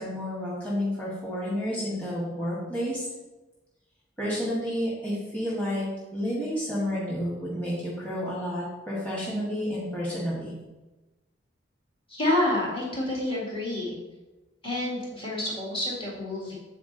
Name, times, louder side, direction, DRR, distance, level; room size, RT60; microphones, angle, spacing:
voice 1, 0.0-3.0 4.2-5.8 6.1-10.5, equal, 5° left, -8 dB, 1.7 m, -30 dB
voice 2, 12.1-13.9 14.6-16.5, left 1 dB, 30° left, -5 dB, 2.1 m, -28 dB
8.5 x 4.2 x 4.0 m, 1.1 s
head